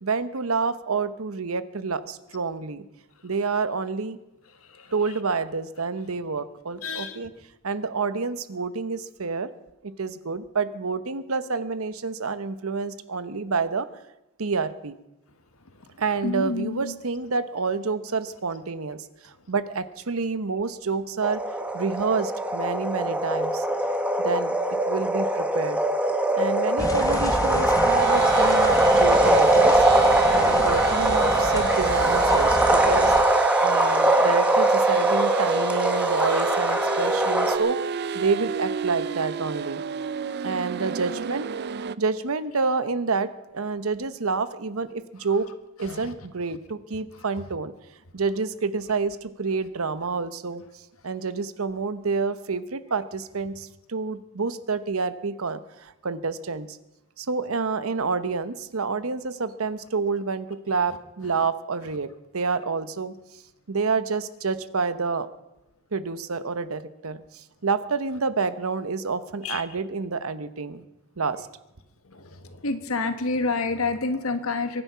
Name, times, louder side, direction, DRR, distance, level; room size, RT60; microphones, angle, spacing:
voice 1, 0.0-2.8 3.2-4.2 4.9-7.3 7.6-9.5 9.8-13.9 14.4-15.0 16.0-21.4 21.7-23.7 24.2-25.8 26.3-29.9 30.3-33.2 33.6-37.8 38.1-39.8 40.4-41.5 42.0-45.5 45.8-47.7 48.1-50.6 51.0-56.8 57.2-63.1 63.7-65.3 65.9-70.8 71.2-71.5, right 4 dB, 80° right, 13 dB, 0.9 m, -28 dB
voice 2, 6.8-7.2 16.2-17.0 30.0-30.1 45.8-46.1 61.2-61.5 69.4-69.6 72.1-72.2 72.6-74.8, left 3 dB, 80° left, 8 dB, 1.6 m, -28 dB
sound 1, 21.2-37.6, right 1 dB, 5° right, 1.3 m, -22 dB
sound 2, 26.8-33.2, left 1 dB, 15° left, 1.0 m, -32 dB
sound 3, 28.0-42.0, right 7 dB, 50° right, 0.4 m, -29 dB
23.5 x 9.9 x 5.7 m, 0.95 s
head